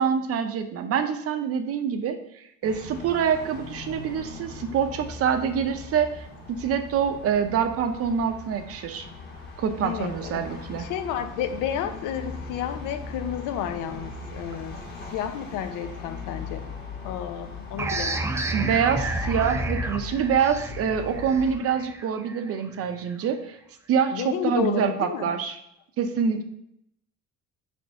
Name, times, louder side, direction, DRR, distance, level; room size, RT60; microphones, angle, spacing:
voice 1, 0.0-9.1 9.6-10.8 18.5-23.6 23.9-25.6 26.0-26.4, right 7 dB, 50° right, 7 dB, 0.6 m, -26 dB
sound 1, 2.6-21.5, left 4 dB, 30° left, 1.5 m, -39 dB
voice 2, 9.8-14.7 15.1-16.7 17.0-18.3 24.1-25.3, left 9 dB, 80° left, 8 dB, 0.8 m, -31 dB
sound 2, 17.8-23.1, right 2 dB, 10° right, 0.3 m, -31 dB
4.5 x 4.3 x 5.7 m, 0.75 s
cardioid pair, 150°, 31 cm